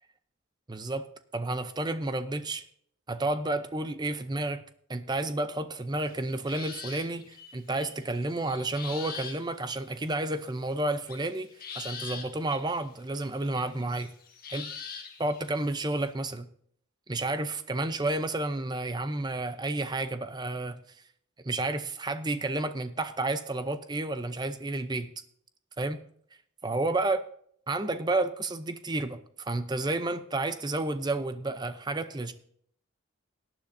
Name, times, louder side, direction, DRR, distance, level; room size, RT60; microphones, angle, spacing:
voice 1, 0.7-1.1 1.3-2.6 3.1-4.6 4.9-11.5 11.7-14.1 14.5-14.7 15.2-16.5 17.1-21.0 21.4-25.1 25.8-26.0 26.6-27.2 27.7-32.3, right 2 dB, 20° right, 11 dB, 0.6 m, -31 dB
sound 1, 6.1-9.4 9.8-9.9 11.1-12.8 13.2-16.0, left 6 dB, 45° left, 1.5 m, -43 dB
18.0 x 9.9 x 2.7 m, 0.64 s
head